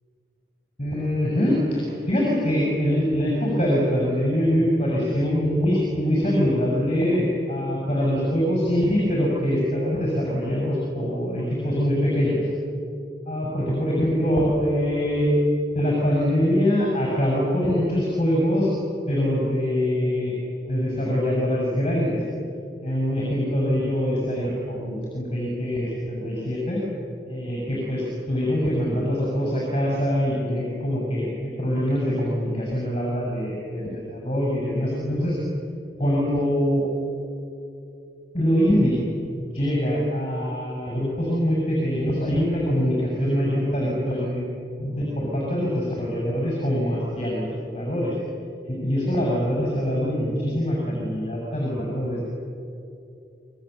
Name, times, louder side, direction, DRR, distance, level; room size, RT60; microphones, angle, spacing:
voice 1, 0.8-12.5 13.3-15.3 15.7-18.7 19.1-20.4 20.7-22.2 22.8-26.8 27.3-35.4 36.0-36.9 38.3-39.0 39.4-44.5 44.8-48.1 48.6-52.3, equal, 35° left, -3 dB, 7.4 m, -24 dB
28.0 x 21.5 x 8.3 m, 2.6 s
head